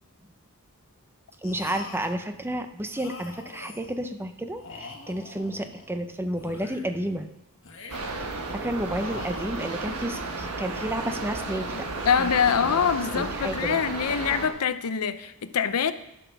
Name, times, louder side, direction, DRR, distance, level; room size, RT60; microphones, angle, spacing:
sound 1, 1.4-2.2 2.9-4.0 4.5-5.9 6.3-7.1 7.6-8.3 8.9-9.9, left 3 dB, 60° left, 1.5 m, -43 dB
voice 1, 1.4-7.3 8.5-11.9 12.2-12.3 12.6-12.8 13.1-13.8, right 1 dB, 10° right, 8 dB, 0.6 m, -31 dB
sound 2, 7.9-14.5, right 3 dB, 75° right, 1.4 m, -33 dB
voice 2, 12.0-15.9, left 7 dB, 75° left, 13 dB, 0.6 m, -24 dB
12.0 x 6.0 x 5.8 m, 0.84 s
head